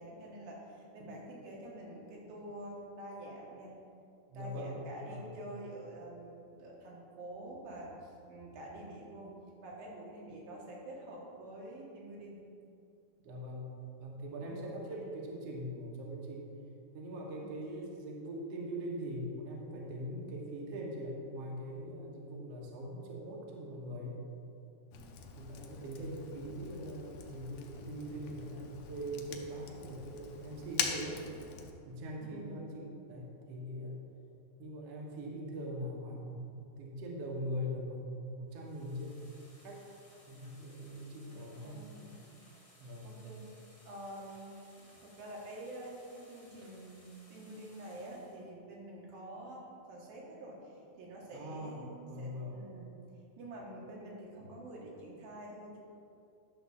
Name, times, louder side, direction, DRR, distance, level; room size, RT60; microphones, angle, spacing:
voice 1, 0.0-3.8 4.3-9.3 9.6-12.4 14.4-14.7 17.3-17.6 32.2-32.7 41.3-41.4 41.6-42.3 43.0-43.6 43.9-44.6 45.0-52.9 53.4-55.8, right 1 dB, 75° right, -3 dB, 3.2 m, -47 dB
voice 2, 4.3-4.7 5.0-5.3 13.2-13.7 14.0-16.4 16.9-24.2 25.4-31.2 31.9-34.0 34.6-39.2 39.6-39.8 40.3-41.8 42.8-43.2 46.6-46.7 51.3-51.8 52.1-52.6, equal, 60° right, -2 dB, 1.8 m, -42 dB
Fire, 24.9-31.7, left 7 dB, 75° left, 2.2 m, -43 dB
sound 1, 38.5-48.4, left 1 dB, 45° left, 0.8 m, -62 dB
11.0 x 3.9 x 6.8 m, 2.5 s
omnidirectional pair, 4.2 m